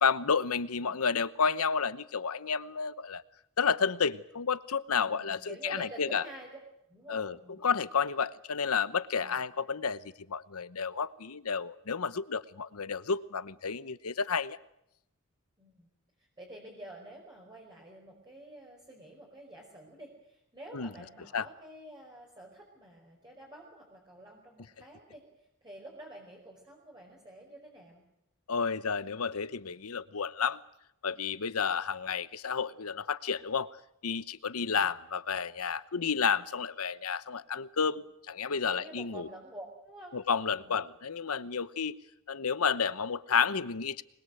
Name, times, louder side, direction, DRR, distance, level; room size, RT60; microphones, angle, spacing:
voice 1, 0.0-3.2 3.6-6.2 7.1-14.6 20.7-20.9 21.3-21.5 28.5-30.6 31.0-33.7 34.0-39.3 40.1-42.0 42.3-44.0, left 6 dB, 90° left, 0.9 m, -31 dB
voice 2, 0.7-1.0 5.0-6.5 6.9-7.6 9.1-9.3 15.6-15.9 16.2-28.0 34.5-34.8 38.6-40.2 40.5-40.8, right 1 dB, 20° right, 5.4 m, -49 dB
25.5 x 21.5 x 7.9 m
head